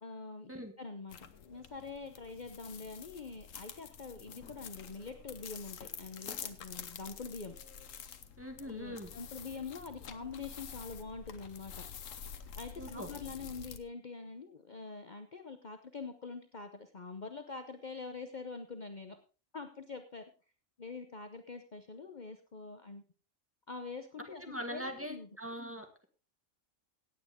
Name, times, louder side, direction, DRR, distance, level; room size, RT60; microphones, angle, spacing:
voice 1, 0.0-0.5 0.8-1.2 1.4-7.6 8.6-11.9 12.5-19.2 19.5-20.3 20.8-23.0 23.7-24.4 24.7-25.3, left 4 dB, 40° left, 7 dB, 0.9 m, -45 dB
sound 1, 1.1-13.8, left 7 dB, 90° left, 1.3 m, -48 dB
voice 2, 8.4-9.1 12.8-13.1 24.2-26.1, equal, 10° right, 4 dB, 1.6 m, -42 dB
16.5 x 8.8 x 3.6 m, 0.34 s
omnidirectional pair, 1.3 m